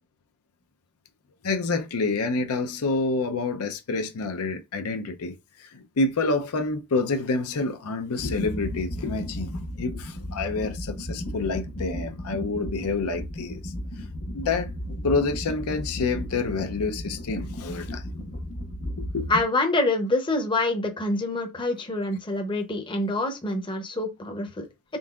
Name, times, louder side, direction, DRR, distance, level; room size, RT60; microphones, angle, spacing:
voice 1, 1.4-13.7 14.3-14.7 15.0-18.1 19.0-19.3, left 3 dB, 85° left, 0.6 m, -28 dB
sound 1, 8.2-19.4, left 1 dB, 50° left, 1.1 m, -34 dB
voice 2, 19.3-24.7, left 2 dB, 20° left, 0.7 m, -26 dB
3.8 x 3.7 x 2.4 m
head